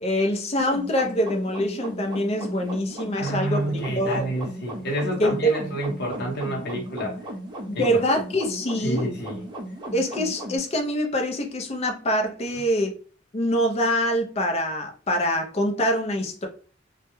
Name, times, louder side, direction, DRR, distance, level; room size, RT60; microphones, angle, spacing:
voice 1, 0.0-4.3 5.2-5.5 7.7-9.1 9.9-12.9 13.3-16.5, equal, 35° left, 0.4 m, -25 dB
sound 1, 0.6-10.6, right 1 dB, 25° right, 0.5 m, -36 dB
voice 2, 3.2-7.2 7.7-7.8 8.8-9.4, right 1 dB, 55° left, 0.8 m, -28 dB
2.2 x 2.1 x 2.9 m
head